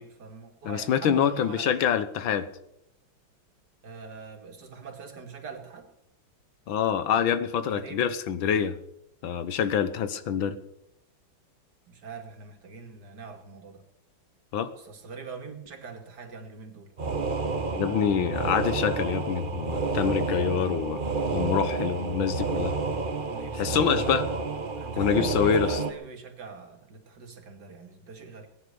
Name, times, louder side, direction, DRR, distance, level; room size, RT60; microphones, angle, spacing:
voice 1, 0.0-1.8 3.8-5.9 7.6-8.1 11.9-13.8 14.8-16.9 23.3-23.9 24.8-28.5, right 5 dB, 55° right, 4 dB, 2.8 m, -43 dB
voice 2, 0.6-2.5 6.7-8.7 9.2-10.6 14.5-14.7 17.7-21.0 21.3-22.7 23.6-24.3 25.0-25.8, left 8 dB, 85° left, 12 dB, 1.8 m, -26 dB
sound 1, 17.0-25.9, right 4 dB, 30° right, 1.0 m, -30 dB
18.0 x 10.0 x 6.9 m, 0.79 s
omnidirectional pair, 2.1 m